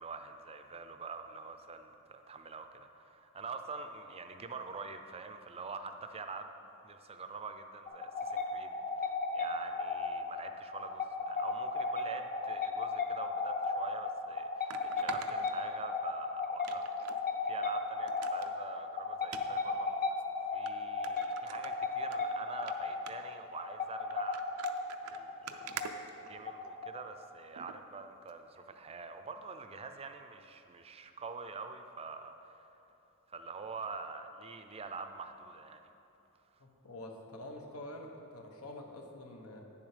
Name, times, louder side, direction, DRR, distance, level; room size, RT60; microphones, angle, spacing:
voice 1, 0.0-6.5 6.8-20.0 20.4-25.8 26.2-32.8 33.3-35.8, right 4 dB, 30° right, 7 dB, 0.5 m, -46 dB
sound 1, 7.9-27.2, left 3 dB, 40° left, 0.8 m, -36 dB
sound 2, 13.6-13.7 14.7-16.1 16.6-17.2 17.6-17.7 18.1-18.5 19.2-19.4 20.2-20.3 20.7-20.8 21.0-22.2 22.5-22.7 23.1-23.4 24.1-26.8 27.6-27.8 28.3-28.4, right 7 dB, 90° right, 0.5 m, -45 dB
voice 2, 36.6-39.6, left 1 dB, 90° left, 2 dB, 1.2 m, -47 dB
9.7 x 7.2 x 5.1 m, 2.9 s
head